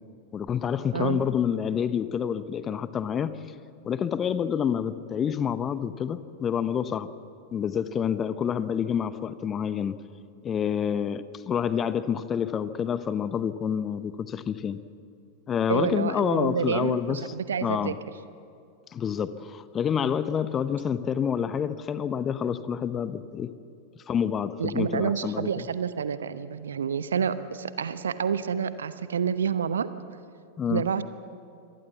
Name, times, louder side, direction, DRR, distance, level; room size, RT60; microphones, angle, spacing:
voice 1, 0.3-3.3 3.8-7.1 7.5-10.0 10.4-14.8 15.5-17.2 17.6-18.0 18.9-23.5 24.1-25.7 30.6-30.8, left 8 dB, 25° left, 14 dB, 0.9 m, -28 dB
voice 2, 15.7-17.9 24.6-29.9 30.7-31.0, right 7 dB, 65° right, 13 dB, 0.9 m, -28 dB
25.0 x 18.5 x 7.1 m, 2.4 s
figure-of-eight pair, 90°, 0 cm